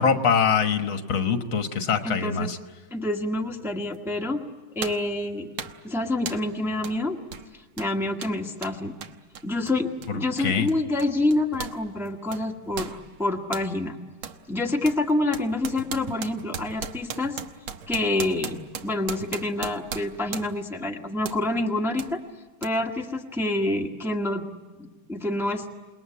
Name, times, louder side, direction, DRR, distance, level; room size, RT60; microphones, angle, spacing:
voice 1, 0.0-2.6 10.4-10.7, left 6 dB, 75° left, 7 dB, 2.2 m, -23 dB
voice 2, 2.0-2.5 2.9-4.4 4.7-5.5 5.8-7.2 7.8-9.0 9.4-14.0 14.5-17.4 17.9-22.2 22.6-24.4 24.8-25.6, left 2 dB, ahead, 1 dB, 1.5 m, -27 dB
sound 1, 3.9-4.1 4.8-5.1 5.6-5.9 6.3-6.5 6.8-7.0 7.3-11.8 12.1-13.7 14.2-14.4 14.8-20.7 21.2-21.4 22.0-22.1 22.6-22.7, right 7 dB, 90° right, 2.0 m, -37 dB
28.5 x 20.5 x 8.5 m, 1.3 s
omnidirectional pair, 2.2 m